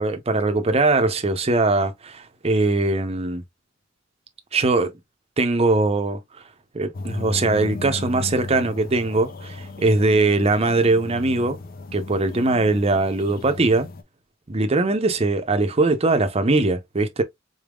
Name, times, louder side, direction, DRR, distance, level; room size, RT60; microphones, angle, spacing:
voice 1, 0.0-3.4 4.5-4.9 5.4-6.2 6.7-11.6 11.9-13.9 14.5-17.2, right 2 dB, 30° right, 0.6 m, -21 dB
sound 1, 6.9-14.0, left 2 dB, 45° left, 0.6 m, -35 dB
4.0 x 3.5 x 2.3 m
head